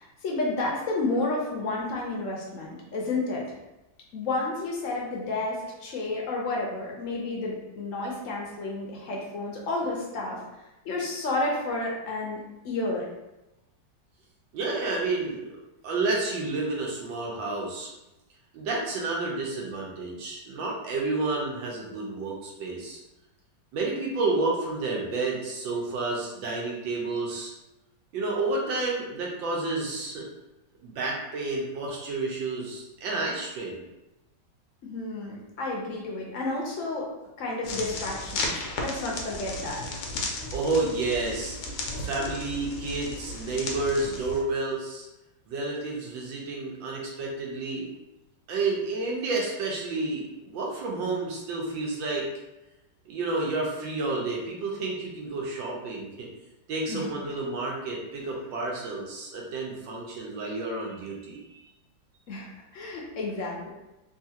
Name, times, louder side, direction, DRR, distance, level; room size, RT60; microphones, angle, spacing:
voice 1, 0.0-3.6 4.1-10.4 10.8-13.1 34.8-37.1 37.4-40.0 56.9-57.3 62.3-63.7, left 2 dB, 65° left, -2 dB, 0.8 m, -31 dB
voice 2, 14.5-15.4 15.8-17.9 18.5-23.0 23.7-27.5 28.1-30.3 30.8-33.8 40.5-41.6 41.9-45.1 45.5-47.9 48.5-52.2 53.1-56.3 56.7-61.4, right 3 dB, 85° right, -2 dB, 1.5 m, -30 dB
sound 1, 37.6-44.4, left 2 dB, 80° left, 1.3 m, -34 dB
3.7 x 2.4 x 2.7 m, 0.97 s
omnidirectional pair, 2.0 m